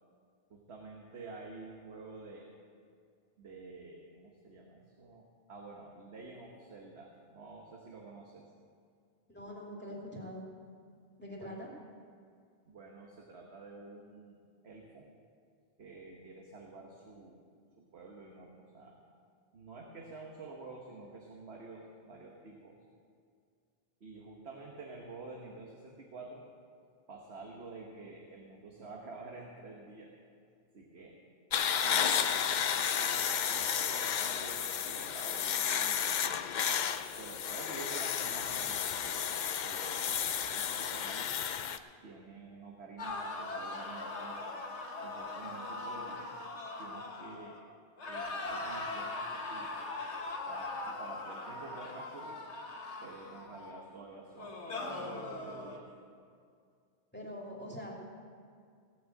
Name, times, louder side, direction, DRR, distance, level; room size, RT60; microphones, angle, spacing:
voice 1, 0.5-2.5 3.4-8.5 11.4-11.6 12.7-14.4 14.6-15.1 15.8-17.4 17.8-19.0 19.5-22.8 24.0-26.4 27.1-30.1 30.7-31.2 31.8-36.8 37.2-39.3 39.6-41.4 42.0-44.5 45.0-46.4 46.8-47.6 48.1-49.7 50.5-52.4 53.0-55.9, right 3 dB, 70° right, -1 dB, 1.5 m, -49 dB
voice 2, 9.3-10.4 11.2-11.7 57.1-57.9, equal, 10° left, -3 dB, 2.6 m, -43 dB
sound 1, 31.5-41.8, left 8 dB, 55° left, 0.6 m, -32 dB
sound 2, 43.0-47.6 48.0-53.8 54.4-55.8, left 2 dB, 85° left, 1.6 m, -40 dB
17.5 x 6.3 x 7.7 m, 2.2 s
omnidirectional pair, 1.1 m